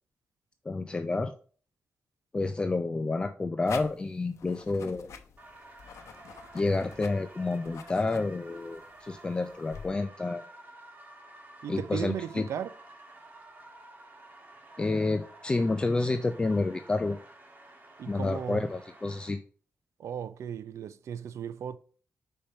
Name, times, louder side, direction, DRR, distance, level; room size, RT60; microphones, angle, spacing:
voice 1, 0.7-1.3 2.3-5.1 6.5-10.4 11.7-12.4 14.8-17.2 18.1-19.4, left 3 dB, 20° left, 0.4 m, -29 dB
sound 1, 3.7-9.9, left 6 dB, 80° left, 0.7 m, -48 dB
sound 2, 5.4-19.3, right 2 dB, 35° right, 1.5 m, -51 dB
voice 2, 11.6-12.7 18.0-18.7 20.0-21.8, right 8 dB, 80° right, 0.5 m, -36 dB
5.1 x 4.4 x 5.4 m
wide cardioid pair, 175°, 5 cm